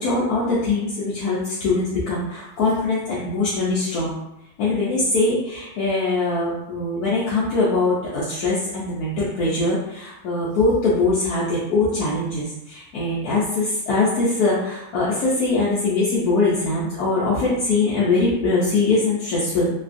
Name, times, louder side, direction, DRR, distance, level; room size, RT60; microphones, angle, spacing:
voice 1, 0.0-4.2 4.6-19.7, left 3 dB, 70° left, -7 dB, 0.9 m, -22 dB
3.2 x 2.3 x 2.5 m, 0.86 s
omnidirectional pair, 2.1 m